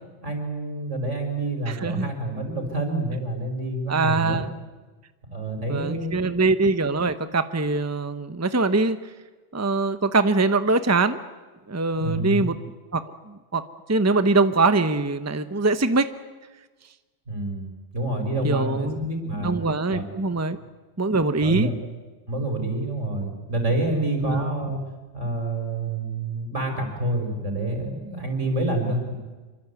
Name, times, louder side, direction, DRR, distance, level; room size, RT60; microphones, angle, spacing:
voice 1, 0.2-4.5 5.2-6.4 11.9-12.5 17.3-19.6 19.9-20.1 21.4-21.8 22.3-24.8 25.1-29.1, right 2 dB, 75° right, 4 dB, 5.6 m, -28 dB
voice 2, 1.7-2.1 3.9-4.5 5.7-9.0 9.5-11.2 11.7-12.6 12.9-13.0 13.5-13.6 13.9-16.1 18.4-19.1 19.4-20.6 21.0-21.7 24.2-24.5, right 3 dB, 15° right, 11 dB, 0.9 m, -22 dB
26.5 x 24.5 x 8.4 m, 1.3 s
omnidirectional pair, 1.2 m